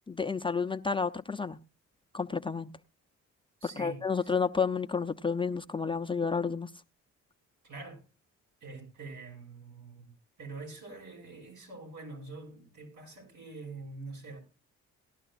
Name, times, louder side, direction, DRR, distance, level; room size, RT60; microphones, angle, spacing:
voice 1, 0.1-1.6 2.1-2.7 3.8-6.7, left 5 dB, 15° left, 0.6 m, -30 dB
voice 2, 3.6-4.3 7.6-8.0 8.6-10.1 10.4-14.4, right 3 dB, 75° right, 6.6 m, -45 dB
18.5 x 12.0 x 2.5 m
cardioid pair, 90°, 30 cm